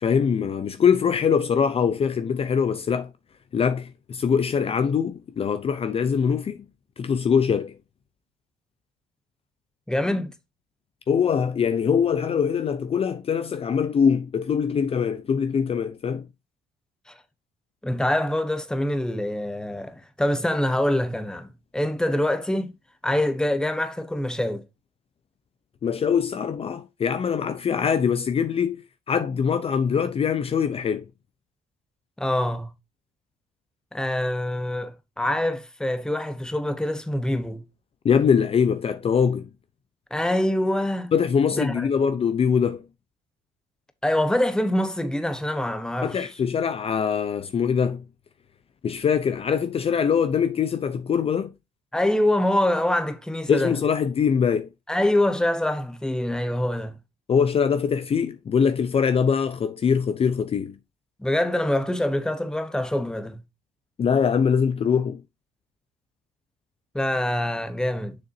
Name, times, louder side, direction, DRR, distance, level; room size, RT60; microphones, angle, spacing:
voice 1, 0.0-3.1 3.5-6.6 7.0-7.8 11.1-16.3 25.8-28.8 29.1-31.0 38.0-39.5 41.1-42.8 46.0-48.0 48.8-51.5 53.5-54.7 57.3-60.7 64.0-65.2, left 7 dB, 35° left, 0.6 m, -23 dB
voice 2, 9.9-10.3 17.8-22.7 23.0-24.6 32.2-32.7 33.9-37.6 40.1-41.1 41.5-42.0 44.0-46.3 51.9-53.7 54.9-57.0 61.2-63.4 66.9-68.2, left 1 dB, 5° left, 1.0 m, -25 dB
6.8 x 6.5 x 2.7 m
cardioid pair, 110°, 17 cm